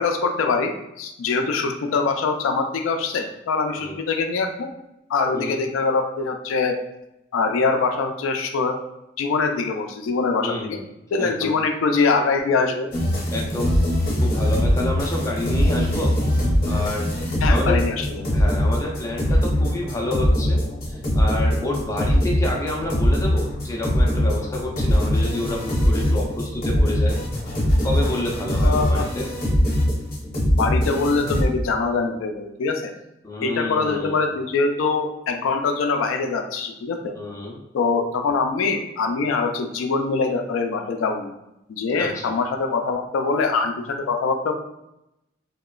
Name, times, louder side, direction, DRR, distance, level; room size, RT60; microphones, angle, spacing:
voice 1, 0.0-4.7 5.1-6.8 7.3-8.8 9.2-10.8 11.1-12.9 17.4-18.2 28.6-29.1 30.4-32.9 33.4-37.1 37.7-41.3 41.7-44.5, left 4 dB, 85° left, 5 dB, 0.3 m, -23 dB
voice 2, 10.4-10.8 11.2-11.5 13.3-13.8 14.2-17.1 17.5-17.8 18.3-27.2 27.8-29.3 33.2-34.2 37.1-37.6 42.0-42.3, left 1 dB, 15° left, -2 dB, 0.4 m, -29 dB
sound 1, 12.9-31.4, equal, 50° left, 0.8 m, -22 dB
2.9 x 2.1 x 2.3 m, 0.87 s
head